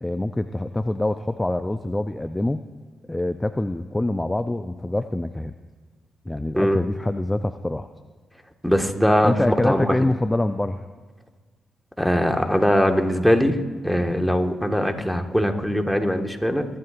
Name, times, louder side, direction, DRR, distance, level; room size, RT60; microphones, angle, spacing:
voice 1, 0.0-2.6 3.1-5.5 6.3-7.9 9.2-10.8, left 1 dB, 15° left, 9 dB, 0.6 m, -25 dB
voice 2, 8.6-9.3 9.6-10.0 12.0-13.6 13.8-16.7, equal, ahead, 4 dB, 1.7 m, -21 dB
23.5 x 11.5 x 2.6 m, 1.4 s
hypercardioid pair, 45°, 0 cm